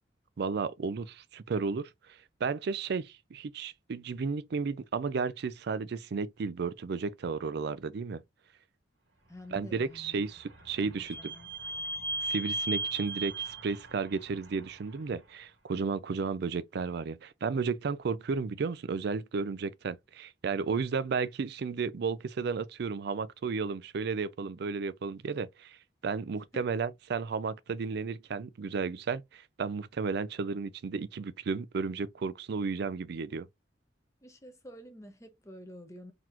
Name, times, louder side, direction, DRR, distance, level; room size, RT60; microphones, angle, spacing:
voice 1, 0.4-1.9 2.4-8.2 9.5-11.3 12.2-25.8 26.0-33.5, right 5 dB, 60° right, 0.4 m, -33 dB
voice 2, 9.3-10.2 10.8-11.5 26.5-26.7 34.2-36.1, equal, 15° left, 0.8 m, -49 dB
Vehicle / Squeak, 9.6-15.2, right 2 dB, 80° right, 1.7 m, -38 dB
4.0 x 2.9 x 2.6 m
head